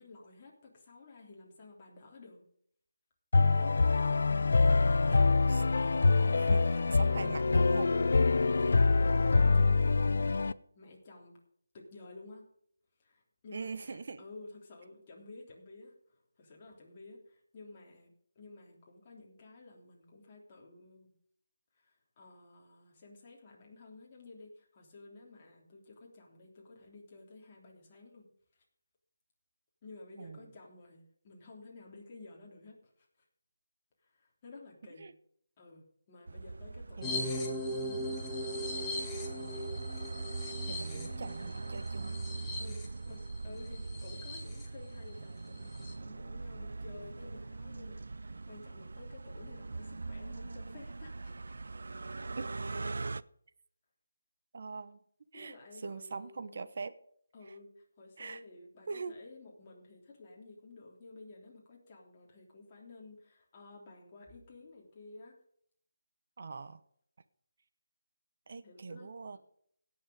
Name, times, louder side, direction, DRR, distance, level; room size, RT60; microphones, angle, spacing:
voice 1, 0.0-2.4 3.6-4.1 6.2-7.4 8.1-10.4 10.7-11.4 11.7-12.5 13.0-18.1 18.3-21.1 21.7-28.3 28.5-28.6 29.8-33.1 34.0-35.1 35.6-39.4 42.6-51.6 55.3-56.7 57.3-65.4 68.6-69.4, left 3 dB, 25° left, -2 dB, 3.3 m, -53 dB
sound 1, 3.3-10.5, left 3 dB, 60° left, 0.5 m, -25 dB
voice 2, 5.1-5.7 6.4-6.6 6.9-7.9 13.5-14.2 30.2-30.5 35.0-35.1 37.0-37.4 39.5-39.7 40.4-42.2 52.4-52.5 54.5-55.0 55.3-56.9 57.4-57.6 58.2-58.4 58.9-59.2 66.4-66.8 68.5-69.4, right 4 dB, 45° right, 13 dB, 1.0 m, -42 dB
sound 2, 36.3-53.2, right 3 dB, 70° right, 0.5 m, -42 dB
sound 3, 37.0-44.7 45.1-45.2 45.4-45.9, left 1 dB, 5° left, 1.6 m, -39 dB
17.0 x 7.1 x 5.1 m, 0.66 s
figure-of-eight pair, 170°, 0 cm